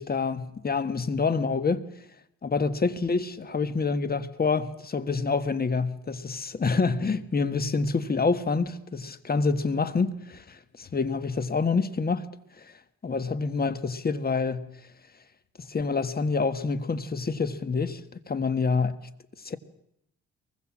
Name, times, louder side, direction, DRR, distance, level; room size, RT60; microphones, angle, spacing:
voice 1, 0.0-1.8 2.4-12.2 13.0-14.7 15.6-18.0 18.3-18.9 19.4-19.6, left 4 dB, 30° left, 1.6 m, -27 dB
23.0 x 20.5 x 7.5 m
cardioid pair, 90°, 30 cm